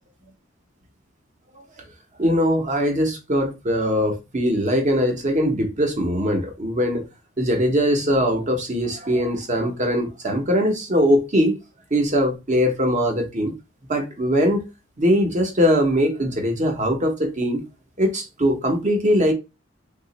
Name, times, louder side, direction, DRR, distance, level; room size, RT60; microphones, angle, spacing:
voice 1, 2.2-7.0 7.4-11.6 11.9-13.5 13.9-14.6 15.0-17.6 18.0-19.3, equal, 35° right, 0.8 m, -21 dB
2.8 x 2.4 x 4.0 m
head